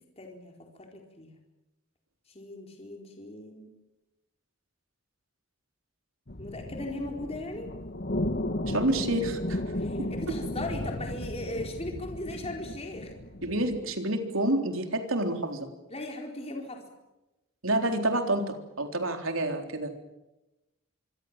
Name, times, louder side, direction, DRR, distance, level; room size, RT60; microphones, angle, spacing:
voice 1, 0.2-1.3 2.3-3.7 6.4-7.7 9.7-13.1 15.9-16.8, left 1 dB, 30° left, 2 dB, 4.4 m, -38 dB
sound 1, 6.3-13.8, left 1 dB, 50° left, 1.7 m, -34 dB
voice 2, 8.7-9.6 10.0-10.4 13.4-15.7 17.6-19.9, right 1 dB, 90° right, 5 dB, 3.9 m, -28 dB
25.5 x 25.0 x 7.6 m, 0.99 s
head